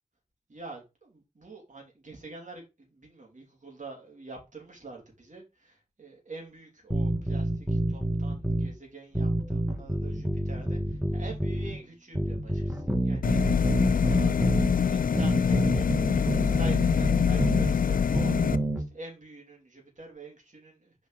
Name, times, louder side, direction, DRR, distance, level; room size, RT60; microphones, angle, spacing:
voice 1, 0.5-2.6 2.9-18.3 18.9-20.9, right 3 dB, 55° right, 3.0 m, -46 dB
sound 1, 6.9-8.7 9.1-11.8 12.1-14.7 15.1-17.7 18.1-18.8, right 1 dB, 10° right, 1.6 m, -28 dB
sound 2, 13.2-18.6, left 7 dB, 65° left, 0.4 m, -25 dB
5.9 x 5.2 x 4.2 m
wide cardioid pair, 85°, 15 cm